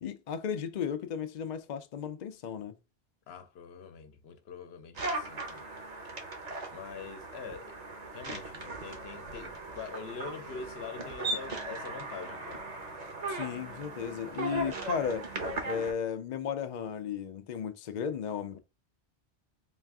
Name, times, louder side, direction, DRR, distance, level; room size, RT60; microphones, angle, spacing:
voice 1, 0.0-2.8 13.3-15.3 15.7-18.6, left 7 dB, 55° left, 0.5 m, -35 dB
voice 2, 3.3-5.6 6.7-7.8 8.1-12.7, left 5 dB, 70° left, 0.9 m, -44 dB
sound 1, 4.9-15.9, right 2 dB, 40° right, 0.9 m, -38 dB
4.0 x 2.4 x 3.4 m
omnidirectional pair, 1.1 m